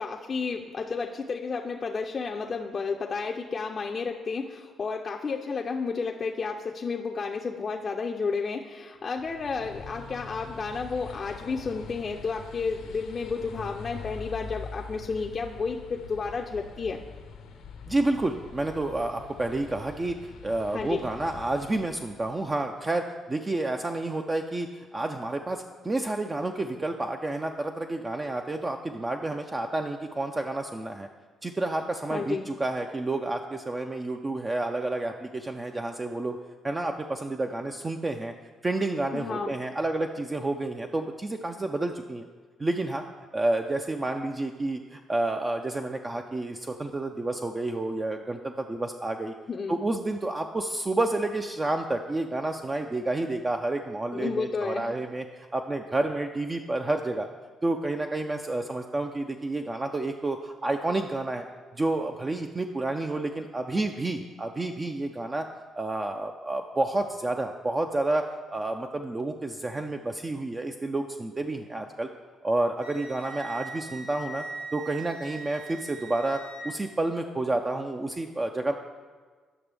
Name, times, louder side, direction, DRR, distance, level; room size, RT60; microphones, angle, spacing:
voice 1, 0.0-17.0 20.7-21.0 32.1-32.5 39.1-39.6 49.5-49.8 54.1-54.9, left 4 dB, 40° left, 1 dB, 0.5 m, -31 dB
sound 1, 9.0-22.5, left 5 dB, 85° left, 0.7 m, -44 dB
voice 2, 17.9-31.1 31.4-36.4 36.6-38.3 38.6-42.3 42.6-43.0 43.3-49.3 49.7-57.3 57.6-61.5 61.7-65.5 65.8-72.1 72.4-74.4 74.7-78.7, right 2 dB, 25° right, 4 dB, 0.4 m, -30 dB
Wind instrument woodwind instrument, 72.8-76.7, right 3 dB, 85° right, 1.7 m, -41 dB
8.8 x 6.0 x 3.4 m, 1.5 s
cardioid pair, 90°, 0 cm